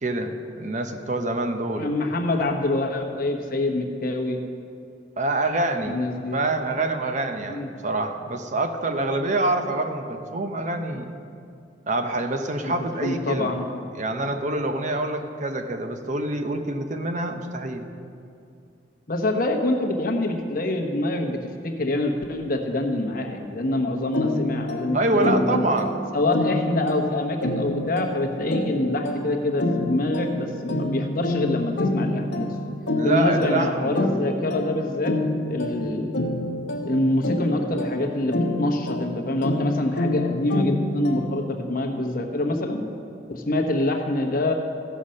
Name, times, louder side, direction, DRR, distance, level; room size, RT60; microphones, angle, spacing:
voice 1, 0.0-1.9 5.2-6.0 6.3-11.1 11.9-13.5 13.9-17.9 24.9-25.9 33.0-33.9, right 2 dB, 45° right, 6 dB, 0.7 m, -26 dB
voice 2, 1.8-4.4 5.8-6.4 7.5-7.7 12.6-12.7 13.0-13.8 19.1-25.6 26.1-32.5 33.0-35.2 35.4-36.1 36.8-42.9 43.3-44.5, left 1 dB, 50° left, 3 dB, 1.1 m, -25 dB
sound 1, 24.1-41.6, left 1 dB, 80° left, 1.0 m, -28 dB
15.5 x 5.7 x 6.4 m, 2.5 s
head